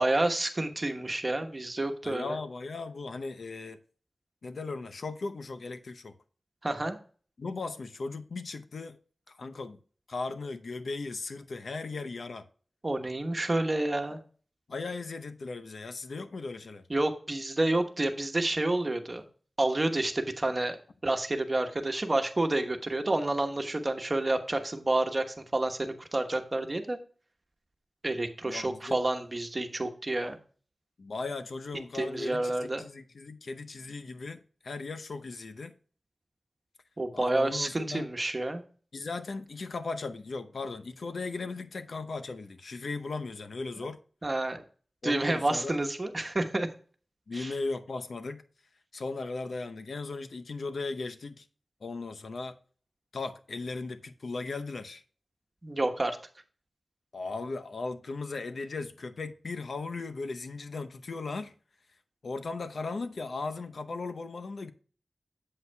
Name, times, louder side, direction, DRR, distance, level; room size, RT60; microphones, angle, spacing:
voice 1, 0.0-2.3 6.6-7.0 12.8-14.2 16.9-19.2 19.6-27.0 28.0-30.4 31.9-32.8 37.0-38.6 44.2-44.6 45.0-46.7 47.3-47.5 55.6-56.2, right 2 dB, 35° right, 1.1 m, -29 dB
voice 2, 2.0-3.8 4.4-6.1 7.4-9.0 9.3-9.8 10.1-12.4 14.7-16.8 28.4-29.0 31.0-35.7 37.1-38.1 38.9-44.0 45.0-45.8 47.3-48.4 48.9-51.5 51.8-52.5 53.1-55.0 57.1-61.5 62.2-64.7, left 3 dB, 80° left, 0.7 m, -37 dB
8.1 x 7.8 x 2.2 m
wide cardioid pair, 70°, 0 cm